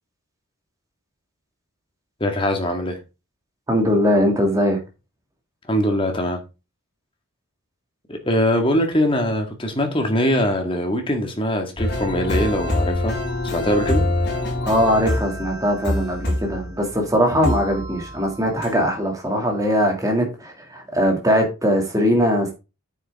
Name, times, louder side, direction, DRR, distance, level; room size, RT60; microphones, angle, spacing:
voice 1, 2.2-3.0 5.7-6.4 8.1-13.1 13.5-14.0, equal, 25° left, 1.9 m, -22 dB
voice 2, 3.7-4.8 14.7-22.5, equal, 15° right, 2.4 m, -20 dB
sound 1, 11.8-17.0 17.4-18.3 18.6-18.7, left 1 dB, 50° left, 4.5 m, -25 dB
8.9 x 7.1 x 3.6 m
head